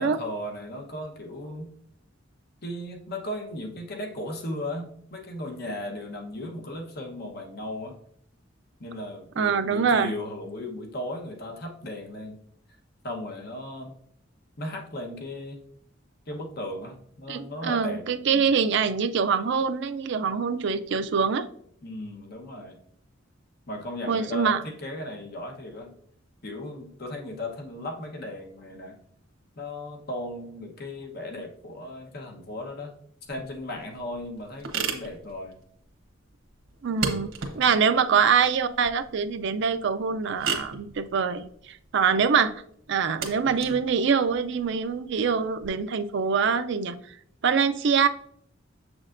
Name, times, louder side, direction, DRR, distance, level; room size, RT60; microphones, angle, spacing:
voice 1, 0.0-1.7 2.6-8.0 8.8-12.4 13.0-13.9 14.6-15.6 16.3-18.5 21.8-22.8 23.7-25.9 26.4-29.0 29.6-32.9 33.3-35.5 37.7-38.0, left 1 dB, 55° left, 2 dB, 1.1 m, -36 dB
voice 2, 9.4-10.1 17.3-21.5 24.1-24.6 36.8-42.6 42.9-47.0 47.4-48.1, right 6 dB, 65° right, 10 dB, 0.4 m, -24 dB
sound 1, 33.3-45.7, right 5 dB, 90° right, 1.2 m, -37 dB
7.1 x 6.1 x 2.6 m, 0.65 s
head